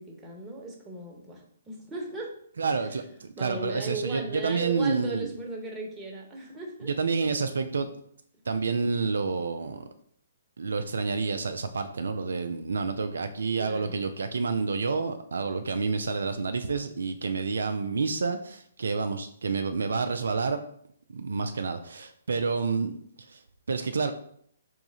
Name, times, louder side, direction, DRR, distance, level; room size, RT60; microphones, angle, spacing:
voice 1, 0.0-2.3 3.3-6.9 13.6-14.0, right 2 dB, 10° right, -1 dB, 1.0 m, -37 dB
voice 2, 2.6-5.3 6.8-7.9 8.5-9.8 10.6-20.6 21.1-22.9 23.2-23.4 23.7-24.1, right 4 dB, 70° right, 8 dB, 0.3 m, -29 dB
3.5 x 3.1 x 3.9 m, 0.65 s
figure-of-eight pair, 130°, 0 cm